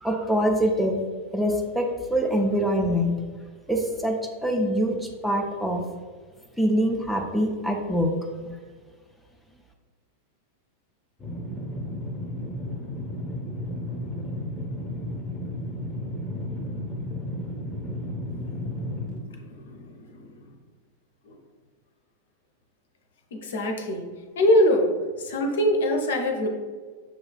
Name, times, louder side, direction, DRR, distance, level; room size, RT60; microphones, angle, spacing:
voice 1, 0.0-1.0 1.3-3.2 3.7-4.9 5.2-5.8 6.6-8.1 8.4-8.6, equal, ahead, 1 dB, 0.4 m, -24 dB
sound 1, 11.2-19.2, left 1 dB, 15° left, 0.9 m, -33 dB
voice 2, 18.3-18.6 19.3-20.4 21.3-21.4 23.3-24.0 24.4-24.9 25.2-26.5, left 1 dB, 60° left, 3 dB, 0.5 m, -24 dB
6.1 x 2.3 x 2.2 m, 1.5 s
figure-of-eight pair, 90°, 0 cm